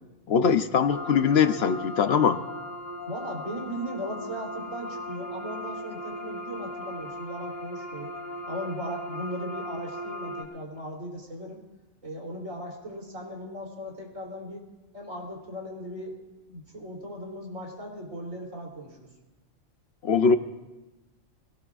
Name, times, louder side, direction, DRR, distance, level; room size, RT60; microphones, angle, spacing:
voice 1, 0.3-2.4 20.0-20.4, left 6 dB, 60° left, 10 dB, 0.8 m, -22 dB
sound 1, 0.9-10.4, left 1 dB, 30° left, 3.6 m, -38 dB
voice 2, 3.1-8.1 8.5-11.6 12.0-14.7 14.9-16.2 16.5-19.1, equal, 85° right, -2 dB, 3.7 m, -37 dB
25.0 x 18.0 x 2.4 m, 1.1 s
omnidirectional pair, 1.3 m